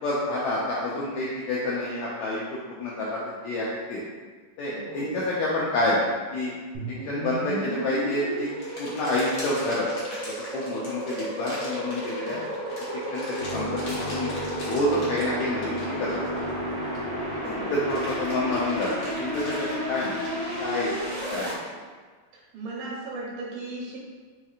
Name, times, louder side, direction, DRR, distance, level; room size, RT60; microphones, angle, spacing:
voice 1, 0.0-2.4 2.7-4.0 4.6-6.5 7.1-8.5 8.8-9.9 10.5-12.4 13.1-14.3 14.6-16.5 17.3-20.3 20.6-20.9 21.3-21.7, left 1 dB, 85° left, -5 dB, 1.6 m, -28 dB
voice 2, 4.7-5.2 12.2-12.5 17.4-17.7 22.3-24.0, right 2 dB, 90° right, -4 dB, 2.6 m, -37 dB
sound 1, 6.7-21.5, equal, 70° right, 1.1 m, -33 dB
sound 2, 7.9-17.1 17.5-21.7, left 1 dB, 60° left, 1.5 m, -41 dB
sound 3, 13.3-21.5, right 2 dB, 50° right, 0.8 m, -38 dB
5.5 x 2.8 x 2.4 m, 1.5 s
omnidirectional pair, 3.8 m